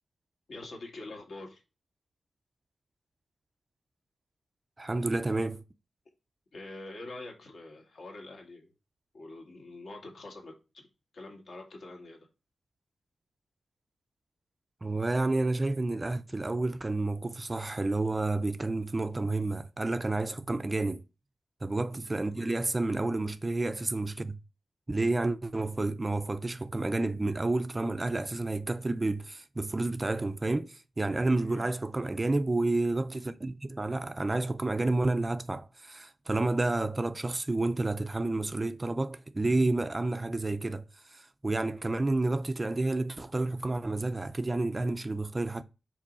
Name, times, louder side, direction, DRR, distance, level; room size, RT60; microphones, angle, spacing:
voice 1, 0.5-1.6 6.5-8.7 9.1-10.8 11.1-12.3 20.3-20.4 22.3-22.6 31.4-31.7, left 2 dB, 65° left, 2.2 m, -45 dB
voice 2, 4.8-5.6 14.8-21.0 21.6-24.4 24.9-45.6, right 2 dB, 20° right, 0.4 m, -30 dB
5.1 x 3.8 x 5.4 m
wide cardioid pair, 115°, 0 cm